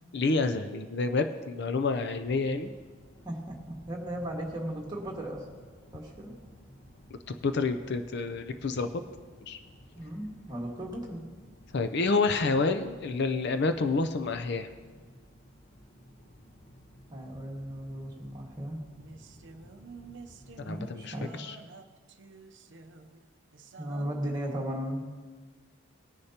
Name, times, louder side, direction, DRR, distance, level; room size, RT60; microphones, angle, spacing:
voice 1, 0.1-2.7 7.3-8.9 9.5-9.6 11.7-14.7 20.6-21.6, left 3 dB, 50° left, 8 dB, 0.5 m, -28 dB
sound 1, 2.1-20.8, equal, 35° left, 1.0 m, -55 dB
voice 2, 3.2-5.4 5.9-6.3 9.9-11.2 17.1-18.8 20.7-21.4 23.8-25.0, right 1 dB, 20° right, -2 dB, 1.8 m, -36 dB
sound 2, 18.9-24.0, right 3 dB, 55° right, 0.6 m, -50 dB
19.0 x 9.9 x 2.9 m, 1.4 s
head